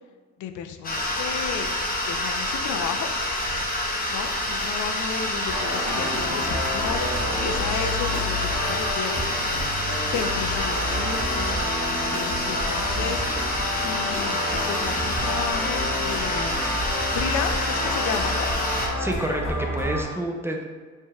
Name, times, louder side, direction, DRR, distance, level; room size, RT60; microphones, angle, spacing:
voice 1, 0.4-1.7 2.1-3.1 4.1-9.9 10.1-11.6 11.9-16.6 17.1-18.5, left 7 dB, 75° left, 7 dB, 0.5 m, -33 dB
sound 1, 0.8-18.9, left 1 dB, 30° left, 1.0 m, -27 dB
sound 2, 2.7-2.8 3.4-3.7 4.4-4.5 5.2-5.5 6.5-7.8, right 2 dB, 85° right, 1.4 m, -47 dB
sound 3, 5.5-20.0, left 1 dB, 60° left, 1.4 m, -29 dB
voice 2, 19.0-20.6, right 1 dB, 10° right, 1 dB, 0.5 m, -29 dB
5.5 x 3.4 x 2.2 m, 1.5 s
cardioid pair, 90°, 30 cm